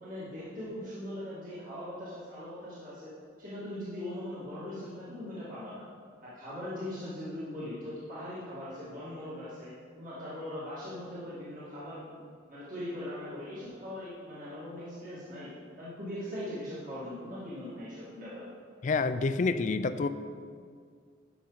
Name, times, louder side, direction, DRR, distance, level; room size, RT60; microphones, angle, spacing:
voice 1, 0.0-3.1 3.4-5.8 6.2-9.7 10.0-12.1 12.5-15.5 15.8-18.5, left 1 dB, 45° right, -10 dB, 2.0 m, -40 dB
voice 2, 18.8-20.1, left 4 dB, 40° left, 11 dB, 0.3 m, -28 dB
11.5 x 6.0 x 4.0 m, 2.1 s
head